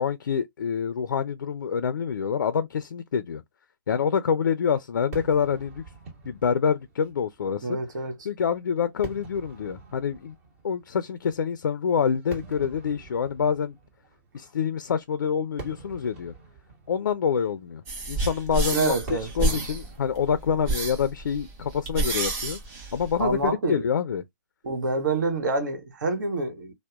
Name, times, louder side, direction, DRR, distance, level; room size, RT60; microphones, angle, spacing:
voice 1, 0.0-3.4 3.9-5.8 6.2-7.8 8.3-10.3 10.6-13.8 14.3-16.3 16.9-17.8 18.1-22.6 22.9-24.2, left 7 dB, 80° left, 0.4 m, -26 dB
Fireworks, 5.1-22.5, right 4 dB, 40° right, 1.4 m, -47 dB
voice 2, 7.6-8.3 18.7-19.6 23.2-23.9 24.6-26.7, right 3 dB, 65° right, 1.1 m, -27 dB
sound 1, 17.9-23.5, right 2 dB, 25° right, 1.1 m, -29 dB
2.7 x 2.0 x 2.2 m
hypercardioid pair, 140°, 11 cm